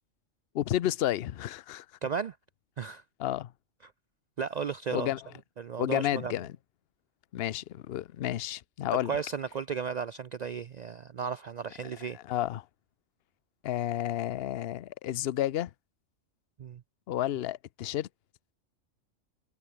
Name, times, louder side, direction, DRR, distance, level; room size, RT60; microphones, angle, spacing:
voice 1, 0.5-1.9 3.2-3.5 4.9-5.2 5.8-6.6 7.3-9.1 12.1-12.7 13.6-15.7 17.1-18.1, left 12 dB, 60° left, 0.8 m, -31 dB
voice 2, 2.0-2.4 2.8-3.0 4.4-5.1 5.6-6.3 8.9-12.2 16.6-16.8, right 6 dB, 80° right, 0.3 m, -34 dB
omnidirectional pair, 1.3 m